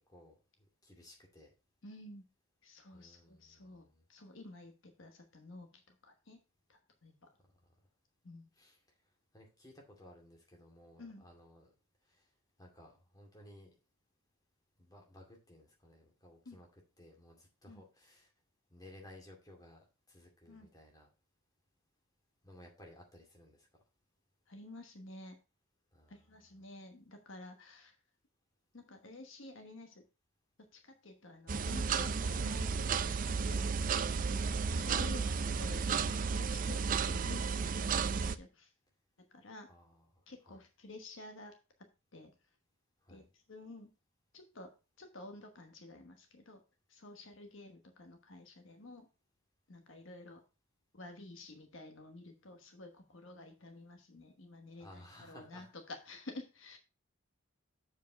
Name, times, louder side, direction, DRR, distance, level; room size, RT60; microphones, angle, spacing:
voice 1, 0.1-1.5 2.9-4.0 8.5-8.8 9.3-11.7 12.1-12.3 12.6-13.7 14.8-16.7 17.0-18.3 18.7-21.1 22.4-23.7 25.9-26.3 34.2-34.5 39.7-40.6 43.0-43.3 54.8-55.7, left 1 dB, 15° left, 0 dB, 2.3 m, -58 dB
voice 2, 1.8-2.2 2.6-6.4 6.7-7.3 8.2-8.5 11.0-11.2 16.4-16.6 17.7-17.8 20.5-20.7 24.5-25.4 26.1-28.0 28.7-30.0 30.7-33.6 34.8-38.7 39.3-39.7 40.3-41.5 42.1-42.3 43.1-43.9 44.3-44.7 45.0-46.6 46.9-49.1 49.7-50.4 50.9-56.8, left 2 dB, 65° left, 5 dB, 1.2 m, -51 dB
sound 1, 31.5-38.4, right 5 dB, 40° right, 0.4 m, -33 dB
7.3 x 4.8 x 5.1 m, 0.30 s
head